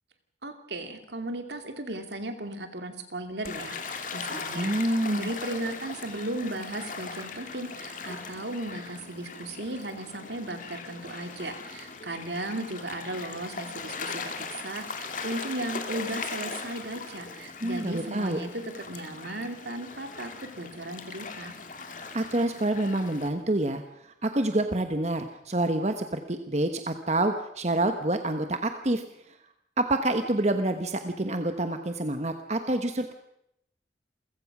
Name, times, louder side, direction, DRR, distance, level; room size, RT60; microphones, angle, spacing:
voice 1, 0.4-4.7 5.0-21.5, right 1 dB, 75° right, 7 dB, 2.6 m, -36 dB
Gull seagull / Waves surf, 3.4-23.3, left 4 dB, 45° left, 2.2 m, -39 dB
voice 2, 4.5-5.3 17.6-18.4 22.1-29.4 29.8-33.1, right 1 dB, 40° right, 7 dB, 1.1 m, -27 dB
28.0 x 15.5 x 6.1 m, 0.77 s
head